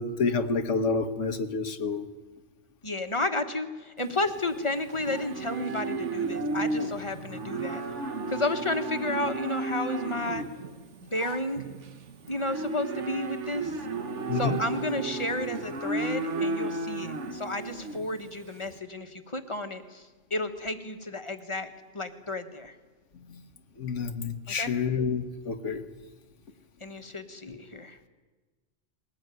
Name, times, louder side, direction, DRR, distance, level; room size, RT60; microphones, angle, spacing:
voice 1, 0.0-2.0 14.3-14.6 23.8-25.8, left 4 dB, 85° left, 7 dB, 1.5 m, -28 dB
voice 2, 2.8-7.8 8.3-10.4 11.0-11.6 12.3-13.8 14.3-21.7 21.9-22.7 24.5-24.7 26.8-28.0, left 2 dB, 25° left, 8 dB, 1.4 m, -32 dB
Livestock farm animals working animals, 4.0-18.7, right 3 dB, 75° right, 1.6 m, -33 dB
21.0 x 18.0 x 9.3 m, 1.3 s
omnidirectional pair, 1.2 m